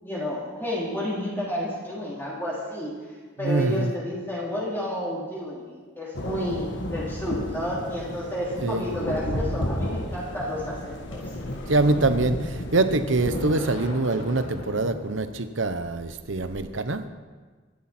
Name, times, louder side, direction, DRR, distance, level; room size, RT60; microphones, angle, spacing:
voice 1, 0.0-11.3, equal, 10° left, -6 dB, 3.2 m, -31 dB
voice 2, 3.4-3.9 8.6-8.8 11.7-17.0, right 2 dB, 70° right, 10 dB, 1.0 m, -24 dB
sound 1, 6.1-13.5, left 1 dB, 60° left, 1.6 m, -32 dB
sound 2, 9.0-16.6, left 1 dB, 80° left, 4.8 m, -40 dB
25.0 x 11.5 x 4.4 m, 1.4 s
head